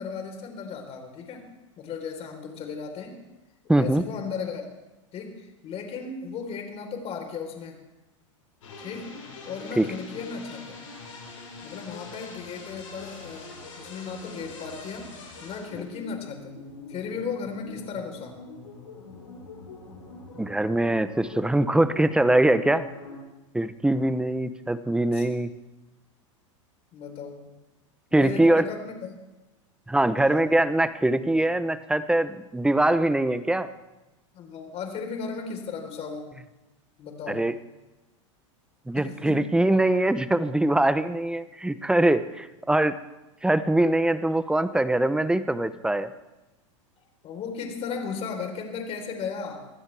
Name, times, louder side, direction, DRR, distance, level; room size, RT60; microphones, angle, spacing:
voice 1, 0.0-1.5 1.8-3.2 3.7-4.7 5.1-7.8 8.8-10.8 11.6-15.1 15.4-18.4 25.1-25.3 26.9-27.5 28.1-29.2 30.2-30.9 34.3-36.4 37.0-37.6 38.9-39.6 47.2-49.7, left 5 dB, 40° left, 4 dB, 4.0 m, -36 dB
voice 2, 3.7-4.0 9.8-9.9 20.4-22.9 23.5-25.5 28.1-28.6 29.9-33.7 37.3-37.5 38.9-43.0 43.4-46.1, right 1 dB, 5° right, 13 dB, 0.8 m, -23 dB
sound 1, 8.6-23.2, left 3 dB, 85° left, 6.8 m, -43 dB
23.5 x 15.5 x 3.5 m, 1.0 s
hypercardioid pair, 110°, 16 cm